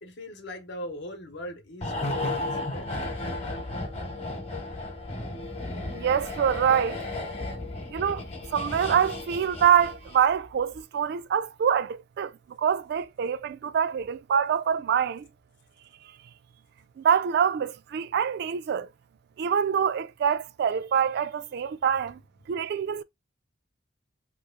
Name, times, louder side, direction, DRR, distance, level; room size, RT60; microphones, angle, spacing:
voice 1, 0.0-2.9, equal, 65° left, 0.9 m, -40 dB
sound 1, 1.8-10.3 10.6-10.8, left 2 dB, 35° left, 0.9 m, -34 dB
voice 2, 5.9-7.0 7.9-8.2 8.5-12.3 12.6-15.3 17.0-18.9 19.4-22.2 22.5-23.0, right 8 dB, 60° right, 0.3 m, -25 dB
2.9 x 2.3 x 3.6 m
head